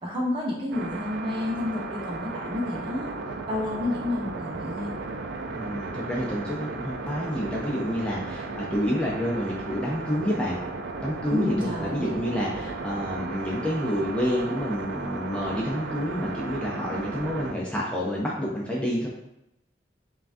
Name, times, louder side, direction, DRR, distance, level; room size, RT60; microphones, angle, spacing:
voice 1, 0.0-3.1 3.5-4.9 11.3-12.4, left 2 dB, 30° right, -3 dB, 0.9 m, -30 dB
sound 1, 0.7-17.5, right 3 dB, 90° right, 0.5 m, -35 dB
voice 2, 5.5-10.6 11.0-19.1, equal, 5° left, -4 dB, 0.5 m, -29 dB
5.6 x 2.3 x 2.6 m, 0.88 s
head